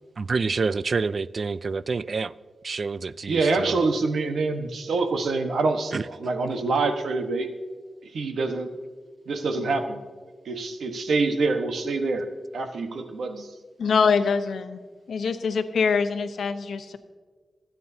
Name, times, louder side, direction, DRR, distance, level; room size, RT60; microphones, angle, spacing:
voice 1, 0.2-2.3 2.6-3.8 5.9-6.1, right 4 dB, 50° right, 0.4 m, -27 dB
voice 2, 3.3-7.5 8.1-8.7 9.3-10.0 10.4-12.3 12.5-13.5, right 3 dB, 85° right, 1.2 m, -26 dB
voice 3, 13.8-14.8 15.1-17.0, left 5 dB, 85° left, 0.9 m, -24 dB
26.5 x 9.3 x 2.8 m
wide cardioid pair, 100°, 0 cm